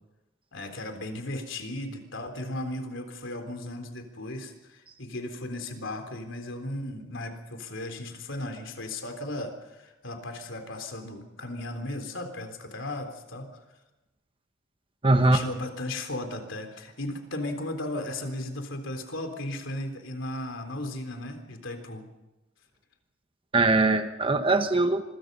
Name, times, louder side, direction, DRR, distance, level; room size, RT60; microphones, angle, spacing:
voice 1, 0.5-13.6 15.2-22.0, left 1 dB, 70° left, 6 dB, 3.8 m, -36 dB
voice 2, 15.0-15.4 23.5-25.0, right 2 dB, 25° right, 7 dB, 1.2 m, -21 dB
26.0 x 22.5 x 5.5 m, 1.1 s
head